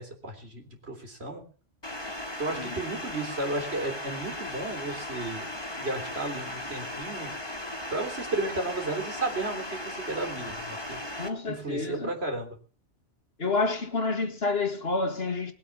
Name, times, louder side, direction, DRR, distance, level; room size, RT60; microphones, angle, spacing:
voice 1, 0.0-1.4 2.4-5.5 5.7-7.3 7.9-11.0 11.5-12.6, right 2 dB, 55° right, 3.8 m, -33 dB
sound 1, 1.8-11.3, left 1 dB, 20° left, 2.8 m, -37 dB
voice 2, 11.2-12.2 13.4-15.5, left 3 dB, 55° left, 2.1 m, -29 dB
21.0 x 8.4 x 7.2 m
omnidirectional pair, 1.3 m